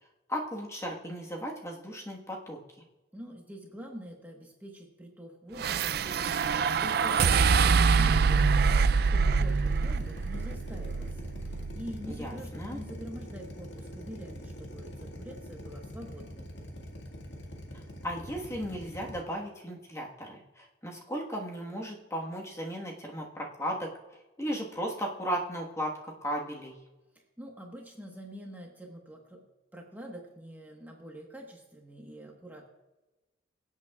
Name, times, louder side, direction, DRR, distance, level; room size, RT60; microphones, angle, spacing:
voice 1, 0.3-2.6 12.2-12.8 18.0-23.9 24.4-26.7, equal, 15° left, -1 dB, 1.4 m, -36 dB
voice 2, 3.1-16.5 27.1-29.5 29.7-32.7, equal, 10° right, 0 dB, 1.2 m, -46 dB
sound 1, 5.6-12.0, right 5 dB, 55° right, 0.4 m, -25 dB
Drill, 7.2-19.2, equal, 75° left, 1.9 m, -43 dB
24.0 x 8.2 x 2.4 m, 1.1 s
head